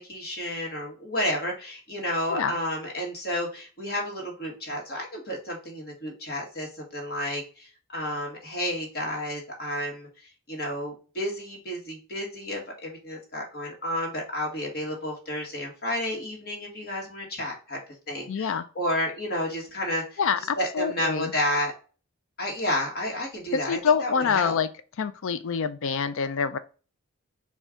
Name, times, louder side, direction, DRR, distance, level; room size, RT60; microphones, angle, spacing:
voice 1, 0.0-17.8 18.1-21.7 22.4-24.6, left 1 dB, 45° left, 1.5 m, -31 dB
voice 2, 18.3-18.6 20.2-21.3 23.5-24.7 25.0-26.6, left 6 dB, 65° left, 0.4 m, -26 dB
4.3 x 2.4 x 3.6 m
head